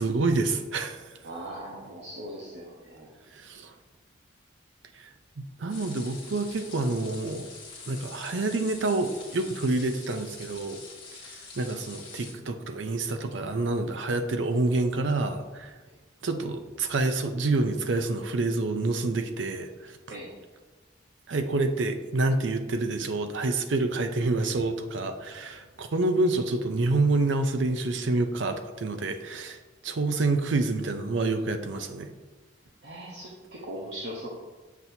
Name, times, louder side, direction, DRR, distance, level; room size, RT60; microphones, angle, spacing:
voice 1, 0.0-1.1 3.3-3.7 5.0-5.1 5.4-7.5 7.9-10.8 11.6-15.7 16.2-20.2 21.3-29.6 29.8-32.1, right 2 dB, 75° right, 7 dB, 0.6 m, -27 dB
voice 2, 1.2-3.1 20.1-20.3 32.8-34.3, right 1 dB, 60° right, -3 dB, 0.9 m, -39 dB
sound 1, 5.7-12.3, left 4 dB, 25° left, 1.4 m, -45 dB
7.3 x 6.0 x 2.7 m, 1.3 s
head